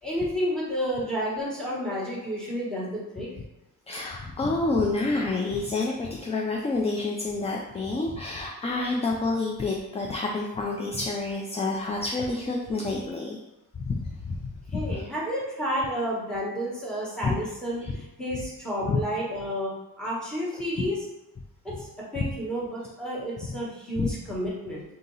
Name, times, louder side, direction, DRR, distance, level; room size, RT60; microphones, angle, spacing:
voice 1, 0.0-3.3 14.7-19.7 20.0-21.0 21.6-24.8, equal, ahead, -6 dB, 1.4 m, -31 dB
voice 2, 3.9-13.4 13.7-15.1 17.2-17.3 17.8-18.0 18.8-19.0 20.8-20.9 22.2-22.3 24.0-24.1, left 3 dB, 20° left, 0 dB, 0.3 m, -28 dB
3.9 x 2.8 x 3.9 m, 0.95 s
cardioid pair, 125°, 36 cm